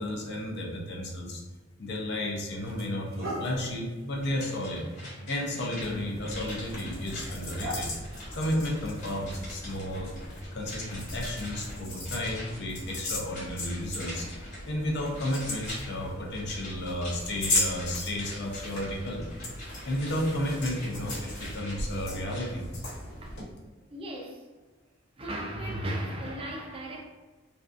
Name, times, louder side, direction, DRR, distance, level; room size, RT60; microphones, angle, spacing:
voice 1, 0.0-1.4 1.8-4.8 5.3-7.9 8.3-10.1 10.5-19.2 19.8-22.7, left 1 dB, 55° left, 0.5 m, -33 dB
sound 1, 1.8-2.0 2.6-10.0, right 1 dB, 75° right, 0.6 m, -42 dB
sound 2, 4.2-22.6 22.9-23.0, left 1 dB, 40° left, 1.1 m, -46 dB
sound 3, 5.8-23.4, left 1 dB, 80° left, 1.1 m, -37 dB
voice 2, 23.9-24.5 25.2-27.0, right 1 dB, 30° right, 0.4 m, -35 dB
2.5 x 2.2 x 2.5 m
head